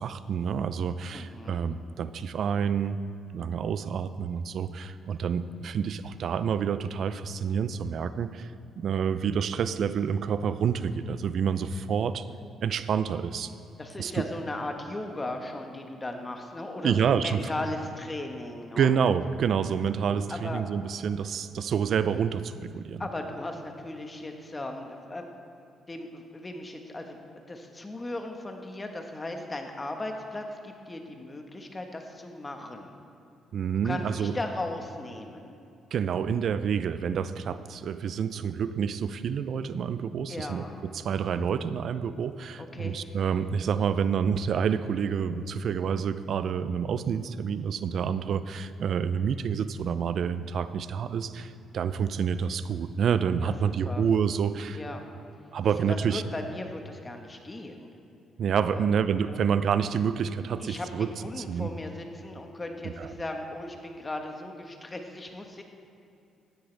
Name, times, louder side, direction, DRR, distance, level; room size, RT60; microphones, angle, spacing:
voice 1, 0.0-3.0 3.3-8.5 8.8-12.3 12.6-13.5 14.0-14.2 16.8-17.4 18.8-23.0 33.5-34.3 35.9-54.8 55.5-56.2 58.4-61.1 61.4-61.7 62.8-63.1, right 7 dB, 60° right, 13 dB, 0.4 m, -28 dB
voice 2, 1.1-1.6 13.8-19.0 20.3-20.6 23.0-25.3 25.9-27.2 27.5-33.0 33.8-35.6 40.3-40.8 42.6-43.0 53.4-54.0 54.7-55.0 55.9-57.9 58.7-58.9 59.3-59.4 60.6-65.6, left 2 dB, 20° left, 4 dB, 1.3 m, -37 dB
15.0 x 10.0 x 3.4 m, 2.7 s
cardioid pair, 90°, 0 cm